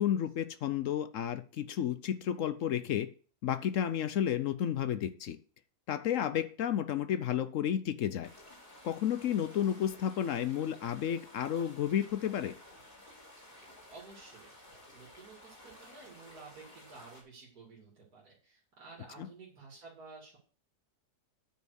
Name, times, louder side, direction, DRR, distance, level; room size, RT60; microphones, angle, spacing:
voice 1, 0.0-3.1 3.4-5.4 5.9-8.3 8.8-12.5 19.2-19.3, left 10 dB, 65° left, 0.9 m, -32 dB
sound 1, 8.2-17.2, left 1 dB, 30° left, 3.1 m, -54 dB
voice 2, 13.6-14.5 14.9-20.4, right 4 dB, 75° right, 2.8 m, -53 dB
8.9 x 5.6 x 6.4 m
omnidirectional pair, 1.6 m